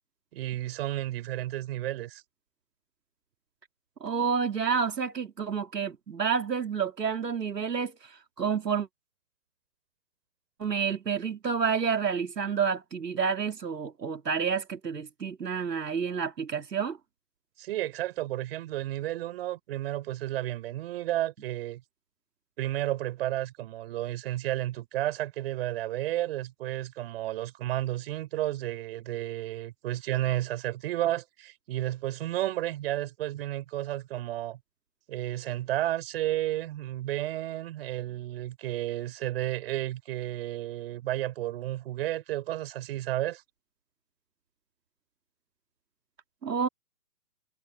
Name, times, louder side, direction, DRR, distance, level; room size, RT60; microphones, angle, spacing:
voice 1, 0.3-2.2 17.6-21.8 22.6-34.6 35.1-43.4, right 14 dB, 35° right, 5.4 m, -32 dB
voice 2, 4.0-8.9 10.6-17.0 46.4-46.7, right 6 dB, 80° right, 3.4 m, -29 dB
hypercardioid pair, 150°, 48 cm